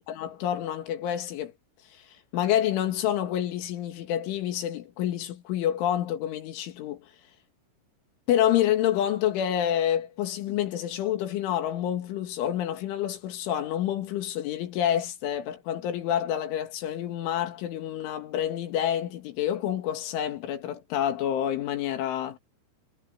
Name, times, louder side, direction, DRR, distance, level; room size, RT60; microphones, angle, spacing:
voice 1, 0.1-1.5 2.3-7.1 8.3-22.4, left 11 dB, 85° left, 4.6 m, -28 dB
omnidirectional pair, 5.4 m